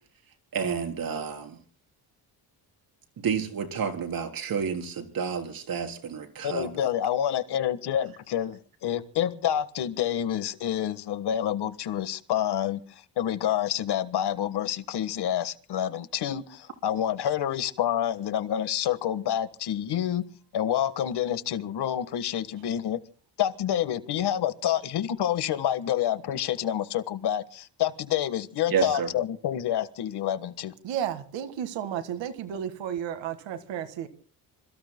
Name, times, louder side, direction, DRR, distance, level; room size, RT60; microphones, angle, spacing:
voice 1, 0.5-1.6 3.2-6.9 28.7-29.1, right 6 dB, 50° right, 3.8 m, -30 dB
voice 2, 6.4-20.3 20.5-23.0 23.4-30.7, left 10 dB, 65° left, 1.5 m, -28 dB
voice 3, 30.8-34.1, right 9 dB, 85° right, 1.9 m, -33 dB
26.5 x 23.5 x 2.2 m
cardioid pair, 125°, 43 cm